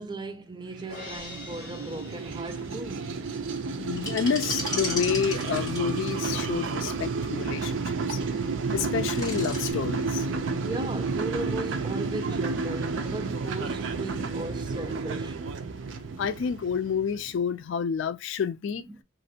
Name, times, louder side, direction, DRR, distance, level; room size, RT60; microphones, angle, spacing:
voice 1, 0.0-3.1 7.5-7.6 10.6-15.4 18.9-19.0, right 2 dB, 25° right, 0.4 m, -37 dB
sound 1, 0.7-17.4, right 4 dB, 80° right, 0.5 m, -31 dB
Crash cymbal, 0.9-3.2, left 3 dB, 50° left, 1.3 m, -44 dB
voice 2, 3.8-8.2 8.7-10.3 16.2-18.9, left 7 dB, 80° left, 0.3 m, -29 dB
sound 2, 4.0-6.7 8.8-9.7, left 2 dB, 20° left, 1.7 m, -35 dB
3.1 x 2.5 x 2.7 m
head